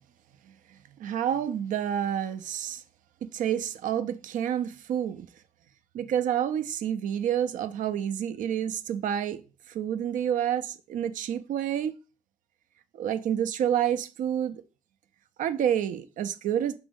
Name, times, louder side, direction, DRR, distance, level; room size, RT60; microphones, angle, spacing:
voice 1, 1.0-2.8 3.2-5.3 5.9-9.4 9.7-12.0 12.9-14.6 15.4-16.7, right 9 dB, 65° right, 0.4 m, -28 dB
5.1 x 2.6 x 3.5 m
hypercardioid pair, 50°, 14 cm